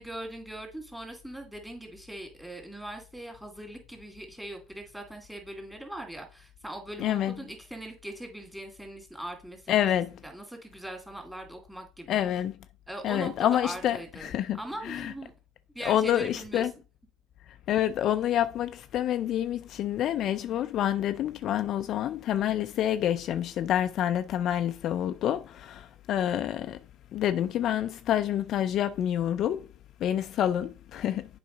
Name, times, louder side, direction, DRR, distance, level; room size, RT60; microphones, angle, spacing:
voice 1, 0.0-9.9 10.2-12.2 12.9-15.3 15.7-16.7, right 1 dB, 5° right, 2.5 m, -41 dB
voice 2, 7.0-7.3 9.7-10.1 12.1-12.5 13.0-14.6 14.8-15.1 15.8-16.7 17.7-26.8 27.1-29.7 30.0-31.3, left 11 dB, 55° left, 0.4 m, -27 dB
7.7 x 4.8 x 3.9 m
hypercardioid pair, 80°, 0 cm